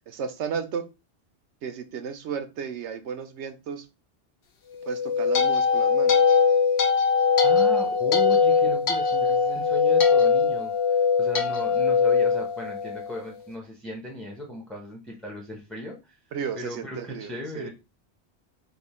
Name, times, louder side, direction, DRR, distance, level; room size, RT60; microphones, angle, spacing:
voice 1, 0.1-0.9 1.6-3.9 4.8-6.2 16.3-17.7, right 6 dB, 90° right, 10 dB, 1.0 m, -33 dB
sound 1, 4.8-13.2, left 5 dB, 70° left, 1.0 m, -21 dB
voice 2, 7.4-16.2 16.5-17.7, left 1 dB, ahead, 0 dB, 0.8 m, -37 dB
3.5 x 2.8 x 4.3 m, 0.27 s
omnidirectional pair, 1.1 m